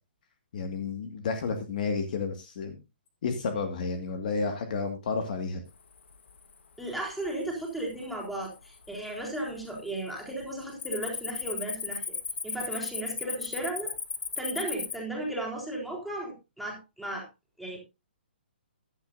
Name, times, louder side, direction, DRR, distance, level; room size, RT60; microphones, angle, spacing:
voice 1, 0.5-2.8 3.2-5.6, left 4 dB, 50° left, 7 dB, 1.9 m, -31 dB
Cricket, 6.0-6.4 6.9-7.3 7.9-8.0 8.6-9.2 9.5-9.8 10.1-15.0, left 5 dB, 85° left, 1.3 m, -35 dB
voice 2, 6.8-12.2 12.4-13.9 14.4-17.3 17.6-17.8, right 1 dB, ahead, -1 dB, 3.8 m, -35 dB
15.5 x 11.5 x 2.6 m, 0.25 s
hypercardioid pair, 160°, 6 cm